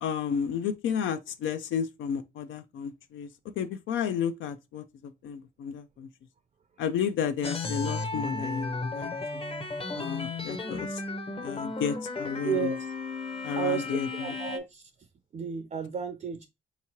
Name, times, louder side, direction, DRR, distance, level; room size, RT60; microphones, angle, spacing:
voice 1, 0.0-3.3 3.6-6.1 6.8-9.1 9.9-11.0 11.4-12.7 13.4-14.3, left 7 dB, 75° left, 0.4 m, -32 dB
sound 1, 7.4-14.6, left 3 dB, 30° left, 0.7 m, -34 dB
voice 2, 12.4-12.8 13.6-14.9 15.3-16.5, right 7 dB, 40° right, 0.5 m, -32 dB
3.6 x 3.0 x 2.8 m
cardioid pair, 90°, 20 cm